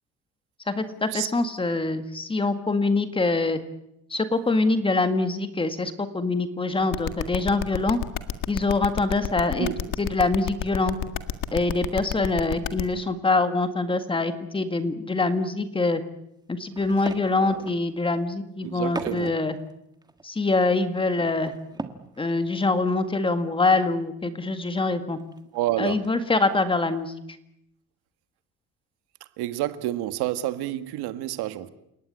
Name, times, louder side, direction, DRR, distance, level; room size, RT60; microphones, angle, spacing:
voice 1, 0.7-3.6 4.1-8.0 8.5-9.7 10.0-11.0 11.5-16.0 16.5-19.6 20.2-21.5 22.2-25.2 25.8-27.1, left 3 dB, 15° left, 1.8 m, -24 dB
sound 1, 6.9-12.8, left 12 dB, 60° left, 1.9 m, -29 dB
sound 2, 16.7-17.9 18.6-19.3 19.7-19.8 20.0-22.2 22.5-22.6 22.9-23.1 23.3-23.4 25.0-25.6 26.0-26.2 26.5-26.8, right 3 dB, 10° right, 1.6 m, -39 dB
voice 2, 18.6-19.4 25.5-26.1 29.4-31.7, right 14 dB, 80° right, 1.9 m, -29 dB
29.5 x 18.0 x 9.9 m
cardioid pair, 165°, 38 cm